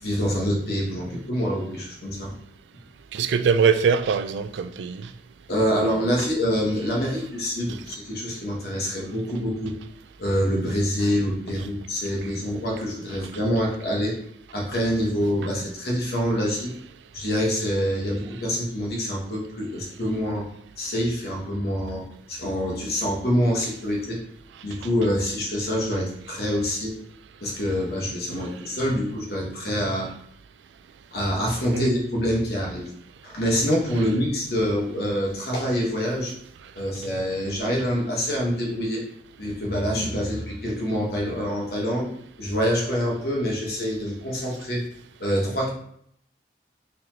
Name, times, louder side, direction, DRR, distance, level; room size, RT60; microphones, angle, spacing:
voice 1, 0.0-2.3 5.5-9.7 10.2-14.2 14.5-16.7 17.1-20.5 20.8-24.2 24.6-27.0 27.4-30.1 31.1-32.9 33.2-36.3 36.7-39.0 39.4-42.1 42.4-44.8 45.2-45.7, equal, 60° left, 1.1 m, -26 dB
voice 2, 3.1-5.0 31.7-31.9, right 6 dB, 90° right, 0.3 m, -22 dB
3.9 x 3.1 x 2.8 m
head